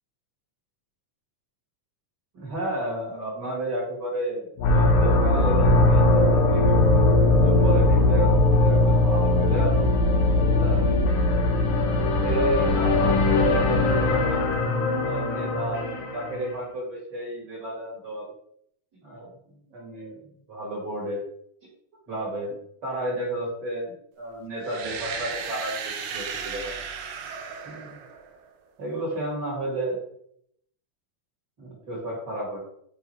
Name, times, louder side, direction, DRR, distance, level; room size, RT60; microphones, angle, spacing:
voice 1, 2.3-6.7 7.4-9.8 10.5-11.2 12.2-14.4 15.0-18.3 19.0-19.3 19.7-20.2 20.5-21.2 22.1-26.7 27.6-28.0 28.8-30.0 31.6-32.7, right 1 dB, 40° right, -3 dB, 1.8 m, -32 dB
sound 1, 4.6-16.5, left 2 dB, 75° left, 2.3 m, -20 dB
sound 2, 24.6-28.5, right 6 dB, 75° right, 1.6 m, -35 dB
5.7 x 3.8 x 4.4 m, 0.70 s
omnidirectional pair, 3.5 m